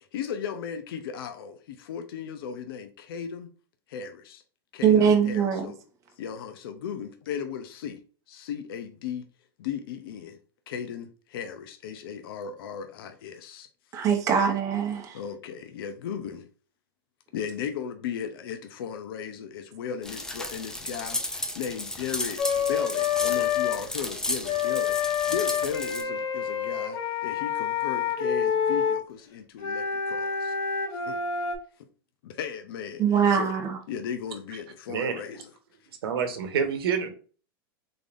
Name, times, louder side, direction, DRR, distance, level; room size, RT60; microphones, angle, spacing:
voice 1, 0.1-3.5 3.9-4.4 4.7-5.8 6.2-8.0 8.3-9.3 9.6-10.4 10.7-13.7 15.1-16.5 17.3-30.5 31.1-31.2 32.2-33.5 33.9-35.5, left 7 dB, 70° left, 0.6 m, -36 dB
voice 2, 4.8-5.7 13.9-15.2 33.0-33.8, right 7 dB, 25° right, 0.7 m, -22 dB
sound 1, 20.0-26.0, left 1 dB, 5° left, 0.5 m, -34 dB
Wind instrument woodwind instrument, 22.4-23.8 24.4-29.0 29.6-31.6, left 7 dB, 55° left, 1.1 m, -27 dB
voice 3, 36.0-37.1, right 7 dB, 80° right, 1.0 m, -27 dB
3.9 x 3.4 x 2.5 m
supercardioid pair, 135°, 12 cm